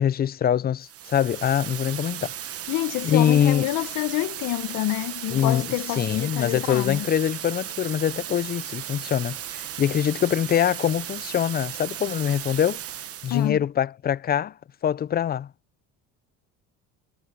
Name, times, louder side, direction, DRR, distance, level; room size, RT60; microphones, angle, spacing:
voice 1, 0.0-2.3 3.0-3.7 5.3-5.6 6.0-12.8 13.2-14.5 14.8-15.5, left 9 dB, 30° left, 0.4 m, -24 dB
sound 1, 0.8-13.5, right 11 dB, 45° right, 1.1 m, -36 dB
voice 2, 2.7-7.1 13.3-13.6, left 18 dB, 65° left, 1.1 m, -28 dB
supercardioid pair, 100°, 34 cm